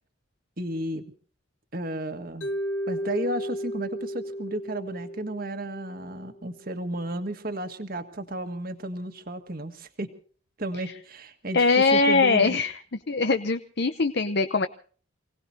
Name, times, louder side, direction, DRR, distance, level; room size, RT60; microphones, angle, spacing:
voice 1, 0.6-1.0 1.7-2.5 2.9-10.1 10.6-12.6, right 1 dB, 45° right, 8 dB, 1.7 m, -33 dB
Mallet percussion, 2.4-6.5, equal, 70° left, 1.3 m, -34 dB
voice 2, 11.5-12.8 13.1-14.7, left 3 dB, 55° left, 9 dB, 0.8 m, -22 dB
29.0 x 18.0 x 2.7 m, 0.44 s
head